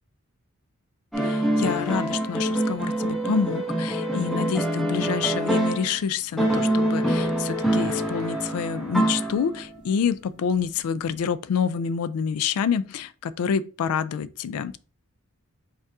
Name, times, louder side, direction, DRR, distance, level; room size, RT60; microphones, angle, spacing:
sound 1, 1.1-6.0 6.4-9.7, right 1 dB, ahead, 1.0 m, -25 dB
voice 1, 1.2-14.8, left 7 dB, 80° left, 0.3 m, -27 dB
5.3 x 2.4 x 3.5 m
head